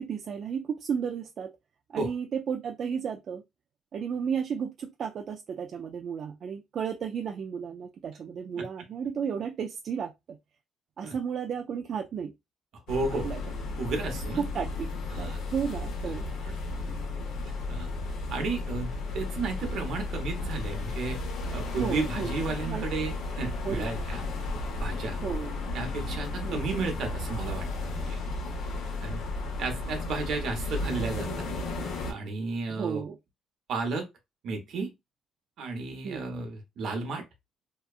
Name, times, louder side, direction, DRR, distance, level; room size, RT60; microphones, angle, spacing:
voice 1, 0.0-1.5 1.9-3.4 3.9-10.1 11.0-12.3 13.1-13.4 14.4-14.9 15.1-16.3 21.7-22.3 22.7-22.9 23.6-23.9 25.2-25.5 26.4-26.6 29.9-30.0 32.7-33.2 36.0-36.2, right 7 dB, 50° right, 0.3 m, -33 dB
sound 1, 12.9-32.1, left 2 dB, 75° left, 0.8 m, -34 dB
voice 2, 12.9-13.3 13.8-14.4 15.1-15.4 16.4-16.5 16.8-16.9 17.7-17.9 18.3-21.2 21.5-24.2 24.8-25.2 25.7-28.2 29.0-29.2 29.6-31.4 32.1-33.0 33.7-34.1 34.4-34.9 35.6-37.2, right 3 dB, 65° right, 0.9 m, -33 dB
2.8 x 2.3 x 2.3 m
cardioid pair, 120°, 0 cm